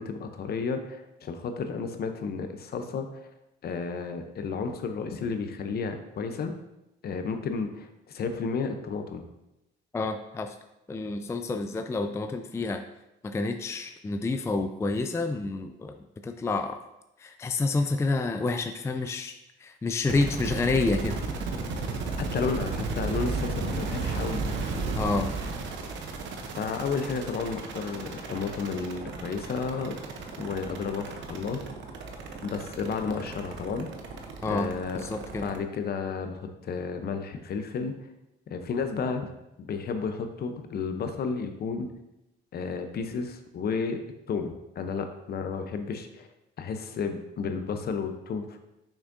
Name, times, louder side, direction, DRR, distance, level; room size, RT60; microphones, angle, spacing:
voice 1, 0.0-3.2 3.6-6.6 7.0-9.2 22.3-24.4 26.6-30.0 30.4-31.6 32.4-33.9 34.5-35.0 35.4-37.9 38.5-39.3 39.7-41.9 42.5-44.0 44.3-46.3 46.6-48.6, left 5 dB, 55° left, 7 dB, 0.8 m, -32 dB
voice 2, 9.9-10.6 10.9-12.8 13.2-16.0 16.2-16.8 17.2-19.3 19.6-21.2 24.9-25.3 34.4-34.7 34.9-35.4, left 3 dB, 15° left, 7 dB, 0.3 m, -28 dB
sound 1, 20.1-35.6, right 3 dB, 75° right, 0.9 m, -34 dB
6.4 x 5.9 x 2.7 m, 0.91 s
cardioid pair, 90°, 19 cm